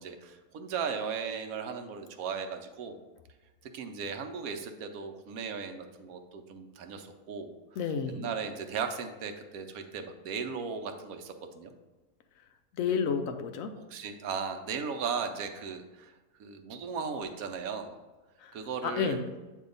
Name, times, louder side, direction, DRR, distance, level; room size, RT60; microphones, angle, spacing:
voice 1, 0.0-3.0 3.7-7.6 8.1-11.7 13.9-16.1 16.4-18.0 18.5-19.2, right 6 dB, 80° right, 6 dB, 1.1 m, -37 dB
voice 2, 7.8-8.2 12.7-13.7 18.4-18.6 18.8-19.2, left 6 dB, 70° left, 7 dB, 0.9 m, -30 dB
8.1 x 2.8 x 5.2 m, 1.2 s
omnidirectional pair, 1.5 m